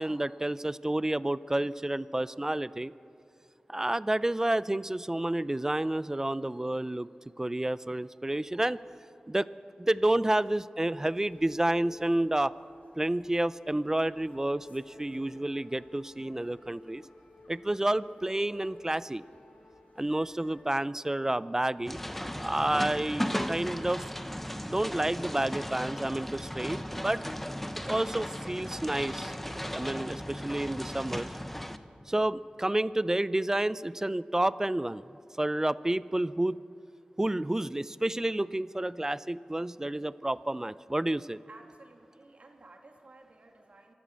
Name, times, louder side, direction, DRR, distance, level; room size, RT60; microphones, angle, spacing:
voice 1, 0.0-2.9 3.7-7.1 7.4-8.8 9.3-9.5 9.8-12.5 13.0-17.0 17.5-19.2 20.0-22.0 22.4-24.1 24.6-27.2 27.8-29.3 29.7-31.3 32.1-35.0 35.4-36.6 37.2-41.4, right 1 dB, 20° right, 17 dB, 0.5 m, -30 dB
sound 1, 11.1-20.6, left 3 dB, 85° left, 3.0 m, -55 dB
sound 2, 21.8-31.8, equal, 5° left, 1.0 m, -36 dB
voice 2, 41.5-43.9, right 2 dB, 60° right, 2 dB, 2.8 m, -54 dB
25.0 x 16.0 x 7.6 m, 2.5 s
wide cardioid pair, 75°, 3 cm